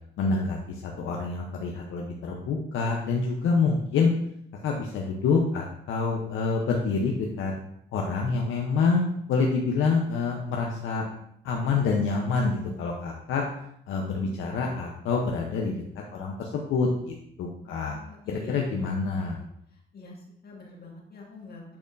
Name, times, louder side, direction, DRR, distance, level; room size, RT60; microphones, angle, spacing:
voice 1, 0.2-4.1 4.6-7.5 7.9-9.0 9.3-11.1 11.4-13.5 13.9-18.0 18.3-19.4, left 4 dB, 80° left, 0 dB, 0.8 m, -27 dB
voice 2, 17.6-19.3 19.9-21.8, left 2 dB, 50° left, -1 dB, 1.8 m, -45 dB
8.5 x 4.3 x 2.5 m, 0.73 s
cardioid pair, 90°, 20 cm